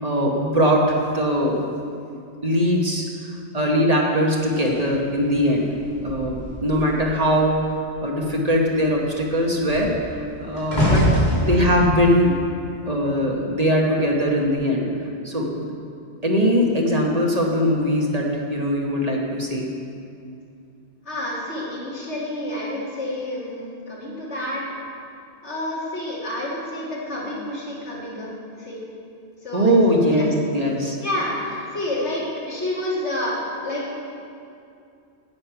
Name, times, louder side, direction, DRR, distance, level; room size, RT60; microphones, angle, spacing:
voice 1, 0.0-1.6 2.4-3.1 3.5-5.7 6.0-7.5 8.0-9.9 10.4-11.1 11.4-12.3 12.9-14.9 15.2-15.7 16.2-19.7 29.5-31.0, equal, 35° right, -1 dB, 1.2 m, -21 dB
door closing into stairway, 4.5-7.2 7.5-7.9 8.2-13.5 14.3-14.5, equal, 40° left, 3.1 m, -26 dB
voice 2, 21.0-24.6 25.4-28.8 29.4-30.3 31.0-34.0, left 1 dB, 80° left, -7 dB, 3.0 m, -29 dB
9.8 x 8.7 x 5.8 m, 2.5 s
omnidirectional pair, 1.1 m